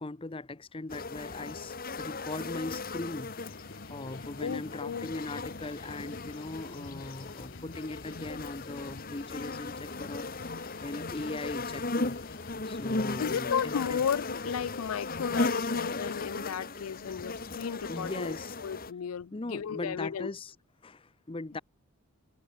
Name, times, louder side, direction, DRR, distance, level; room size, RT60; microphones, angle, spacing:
voice 1, 0.0-3.3 3.9-12.2 12.6-14.0 17.9-18.5 19.3-20.5 20.8-21.6, left 2 dB, 25° left, 0.6 m, -39 dB
sound 1, 0.9-18.9, left 3 dB, 40° left, 1.6 m, -37 dB
sound 2, 2.7-16.4, left 3 dB, 55° left, 1.1 m, -49 dB
voice 2, 4.4-5.1 13.2-18.4 18.6-20.3, left 7 dB, 75° left, 0.4 m, -34 dB
head